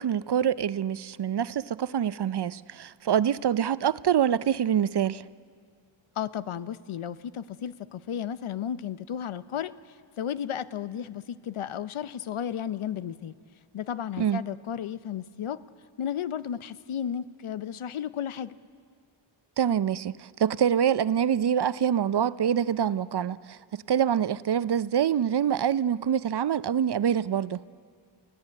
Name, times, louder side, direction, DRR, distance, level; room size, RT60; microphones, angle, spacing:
voice 1, 0.0-5.2 14.2-14.4 19.6-27.6, right 9 dB, 55° right, 0.6 m, -25 dB
voice 2, 6.2-13.3 13.7-15.6 16.0-18.6, left 9 dB, 85° left, 0.8 m, -33 dB
29.0 x 17.0 x 8.3 m
cardioid pair, 60°, 48 cm